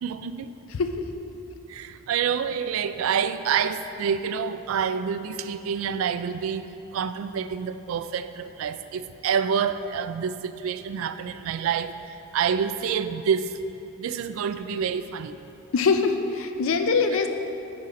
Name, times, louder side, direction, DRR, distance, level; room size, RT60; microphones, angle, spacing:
voice 1, 0.0-0.6 1.7-11.9 12.3-13.6 14.0-15.4, right 7 dB, 80° right, 13 dB, 0.3 m, -27 dB
voice 2, 15.7-17.3, left 4 dB, 80° left, 7 dB, 0.4 m, -23 dB
9.8 x 3.8 x 4.1 m, 3.0 s
head